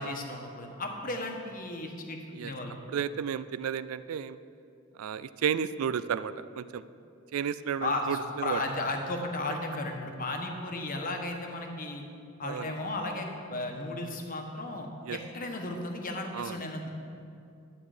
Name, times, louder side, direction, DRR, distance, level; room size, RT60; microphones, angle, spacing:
voice 1, 0.0-2.8 7.8-12.0 12.4-16.9, left 2 dB, 40° left, 3 dB, 1.2 m, -35 dB
voice 2, 2.9-4.4 5.0-6.8 7.3-8.6 12.4-12.7 15.0-15.2 16.3-16.6, right 8 dB, 85° right, 15 dB, 0.4 m, -32 dB
11.5 x 8.8 x 5.0 m, 2.5 s
head